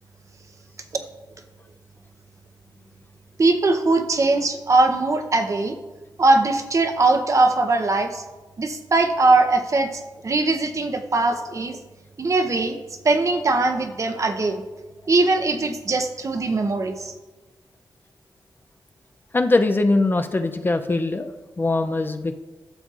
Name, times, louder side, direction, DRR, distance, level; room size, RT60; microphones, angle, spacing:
voice 1, 3.4-5.7 6.2-8.2 8.6-11.8 12.2-12.8 13.0-14.6 15.1-17.1, right 2 dB, 40° right, 6 dB, 0.7 m, -20 dB
voice 2, 19.3-21.3 21.6-22.3, left 2 dB, 25° left, 7 dB, 0.4 m, -21 dB
12.0 x 7.0 x 2.4 m, 1.2 s
wide cardioid pair, 110°, 8 cm